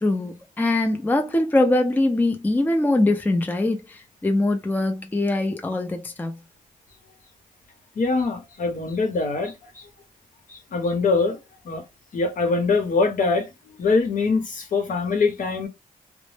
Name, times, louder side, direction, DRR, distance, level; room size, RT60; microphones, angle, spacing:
voice 1, 0.0-6.4, left 2 dB, 10° left, 0.4 m, -22 dB
voice 2, 8.0-9.9 10.5-11.4 11.6-11.8 12.1-15.7, left 4 dB, 65° left, 0.9 m, -23 dB
2.0 x 2.0 x 3.1 m
cardioid pair, 80°, 15 cm